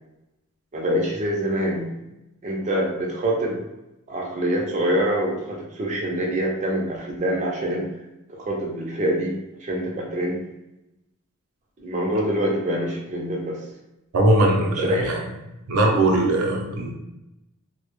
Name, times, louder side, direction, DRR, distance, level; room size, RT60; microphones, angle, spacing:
voice 1, 0.7-1.9 2.4-3.6 4.1-7.9 8.3-10.4 11.8-13.6 14.7-15.1, equal, 30° right, -2 dB, 0.4 m, -25 dB
voice 2, 14.1-15.3 15.7-16.9, right 1 dB, 85° right, 0 dB, 0.5 m, -20 dB
2.1 x 2.0 x 3.0 m, 0.93 s
head